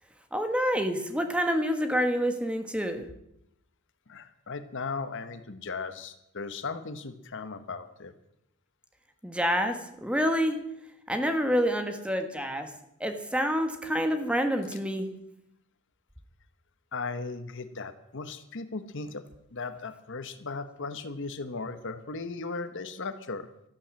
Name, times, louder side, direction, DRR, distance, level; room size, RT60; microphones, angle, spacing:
voice 1, 0.3-3.0 9.2-9.8 10.0-10.6 11.1-12.7 13.0-15.1, equal, 5° right, 6 dB, 1.4 m, -27 dB
voice 2, 4.1-8.1 16.9-19.2 19.5-23.5, left 4 dB, 55° left, 10 dB, 1.1 m, -37 dB
13.5 x 11.0 x 7.5 m, 0.79 s
head